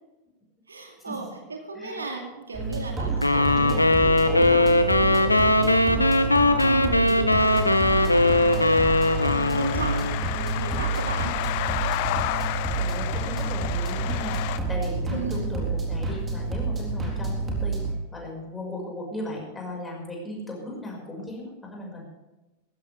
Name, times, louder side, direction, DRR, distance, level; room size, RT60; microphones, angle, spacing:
voice 1, 0.7-11.3 15.1-15.5, right 3 dB, 75° right, 2 dB, 2.5 m, -35 dB
sound 1, 2.5-18.0, right 3 dB, 20° right, 3.9 m, -29 dB
sound 2, 3.2-10.2, left 2 dB, 85° left, 1.0 m, -20 dB
sound 3, 7.4-14.6, left 17 dB, 45° left, 0.5 m, -32 dB
voice 2, 12.8-17.8 18.1-22.0, left 1 dB, 10° left, -1 dB, 5.6 m, -36 dB
19.0 x 15.0 x 3.5 m, 1.1 s
figure-of-eight pair, 90°, 0 cm